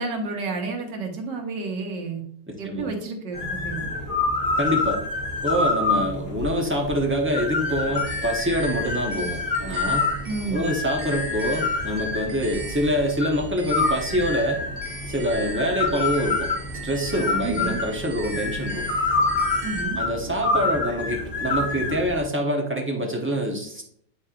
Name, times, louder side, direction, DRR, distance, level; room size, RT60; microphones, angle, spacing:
voice 1, 0.0-2.2 2.6-3.9 10.3-10.7 17.4-17.8 19.6-20.0, right 3 dB, 85° right, 2 dB, 1.7 m, -30 dB
voice 2, 2.5-2.9 4.6-5.0 5.4-10.0 10.5-14.6 15.1-16.5 16.8-18.8 20.0-23.8, equal, 10° right, 0 dB, 0.6 m, -25 dB
sound 1, 3.3-22.2, left 3 dB, 65° left, 1.9 m, -27 dB
sound 2, 7.6-19.8, right 3 dB, 50° right, 1.1 m, -38 dB
8.7 x 4.3 x 2.5 m, 0.65 s
omnidirectional pair, 1.8 m